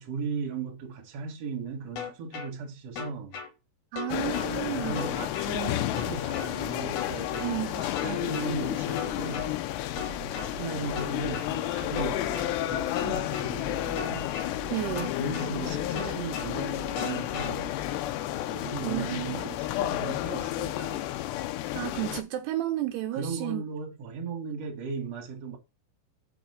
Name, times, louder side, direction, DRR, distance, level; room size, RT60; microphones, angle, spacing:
voice 1, 0.0-3.4 4.5-7.5 7.8-9.5 10.3-14.3 15.2-17.7 18.5-21.1 23.1-25.6, right 5 dB, 50° right, 2.3 m, -37 dB
sound 1, 2.0-2.5 3.0-3.5 4.0-4.5 5.0-5.5 6.0-6.5 7.0-7.5 8.0-8.5 9.0-9.5 10.0-10.5 11.0-11.5 12.0-12.5 13.0-13.5 14.0-14.5 15.0-15.5 16.0-16.5 17.0-17.5, left 7 dB, 60° left, 2.4 m, -36 dB
voice 2, 3.9-5.0 7.4-7.9 14.7-15.1 18.8-19.3 21.7-23.6, right 14 dB, 80° right, 2.6 m, -32 dB
sound 2, 4.1-22.2, left 14 dB, 85° left, 2.9 m, -31 dB
sound 3, 9.1-9.5 9.9-11.3 11.8-13.2 13.6-15.0 15.5-16.9 17.3-18.0, right 7 dB, 5° right, 1.3 m, -45 dB
7.1 x 5.1 x 6.7 m
omnidirectional pair, 4.9 m